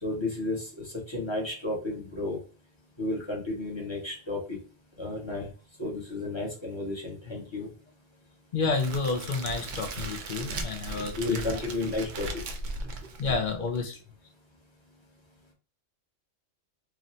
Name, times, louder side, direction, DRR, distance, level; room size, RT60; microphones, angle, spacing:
voice 1, 0.0-2.4 3.0-4.6 5.0-5.5 5.8-7.7 11.0-12.4 12.8-12.9, left 2 dB, 25° left, -3 dB, 0.8 m, -32 dB
voice 2, 8.5-11.4 13.2-14.0, left 4 dB, 55° left, 4 dB, 0.5 m, -30 dB
Crackle, 8.7-13.8, right 2 dB, 65° right, 0.5 m, -37 dB
3.0 x 2.1 x 3.9 m, 0.38 s
omnidirectional pair, 1.3 m